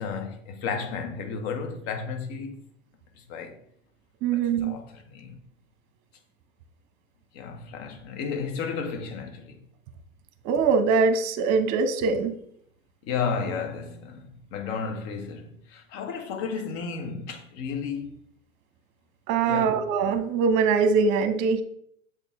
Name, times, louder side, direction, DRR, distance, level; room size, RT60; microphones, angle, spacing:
voice 1, 0.0-2.6 3.1-3.6 4.3-5.4 7.3-9.6 13.0-18.2 19.4-19.8, left 5 dB, 50° left, 1.3 m, -33 dB
voice 2, 4.2-4.7 10.4-12.3 19.3-21.6, right 5 dB, 45° right, 0.9 m, -22 dB
6.9 x 4.2 x 3.5 m
hypercardioid pair, 95°, 40 cm